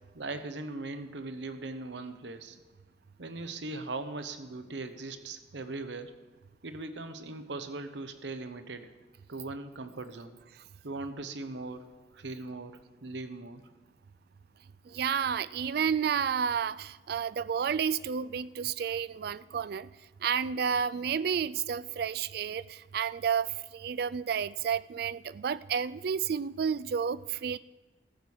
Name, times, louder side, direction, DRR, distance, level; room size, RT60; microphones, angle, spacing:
voice 1, 0.1-2.6 3.2-6.1 6.6-8.9 9.3-10.4 10.8-11.9 12.1-13.6, right 3 dB, 80° right, 9 dB, 0.9 m, -39 dB
voice 2, 14.9-19.9 20.2-27.6, right 7 dB, 60° right, 18 dB, 0.3 m, -31 dB
14.0 x 6.3 x 7.2 m, 1.2 s
head